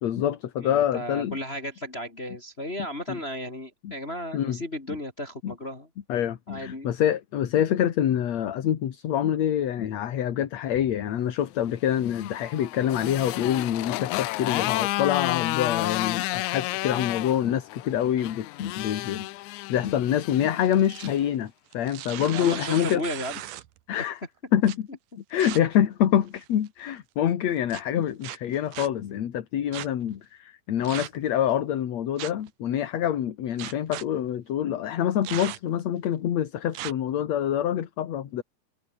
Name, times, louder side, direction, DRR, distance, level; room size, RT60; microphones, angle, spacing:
voice 1, 0.0-1.4 3.1-3.2 3.8-3.9 4.3-4.6 5.4-5.5 6.1-19.3 19.7-23.0 23.9-24.2 24.5-24.9 25.3-38.4, left 10 dB, 60° left, 2.7 m, -26 dB
voice 2, 0.6-5.9 6.5-6.9 22.3-23.6, left 1 dB, 20° left, 2.3 m, -34 dB
Motorcycle, 11.8-21.2, left 21 dB, 80° left, 1.8 m, -31 dB
sound 1, 20.6-21.2 21.7-23.8 24.6-24.8 25.4-25.6 26.3-26.7 27.7-27.8 28.2-28.9 29.7-29.9 30.8-31.3 32.2-32.5 33.6-34.0 35.2-35.8 36.7-36.9, right 14 dB, 80° right, 2.7 m, -37 dB
omnidirectional pair, 3.8 m